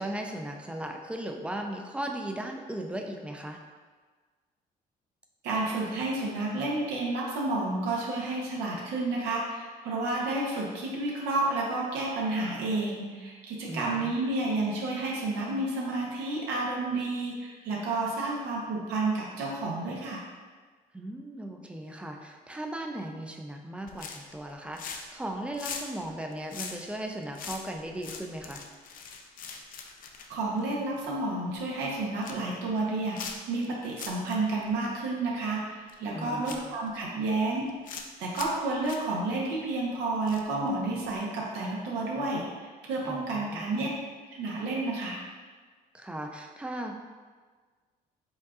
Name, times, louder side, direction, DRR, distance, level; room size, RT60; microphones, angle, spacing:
voice 1, 0.0-3.6 13.7-14.1 20.9-28.6 36.1-36.8 43.0-43.9 45.9-46.9, right 1 dB, 5° right, 3 dB, 0.4 m, -37 dB
voice 2, 5.4-20.2 30.3-37.7 38.2-43.9 44.3-45.2, right 2 dB, 90° right, -4 dB, 0.9 m, -30 dB
sound 1, 23.9-24.4 24.7-25.2 25.5-31.1 31.5-31.6 32.0-32.5 33.1-33.6 33.9-34.4 34.6-34.7 35.9-36.0 36.4-37.0 37.6-38.1 38.3-38.6 38.8-39.0 40.2-40.7 41.0-41.2, left 6 dB, 55° left, 0.5 m, -41 dB
5.3 x 3.7 x 2.4 m, 1.4 s
cardioid pair, 110°, 17 cm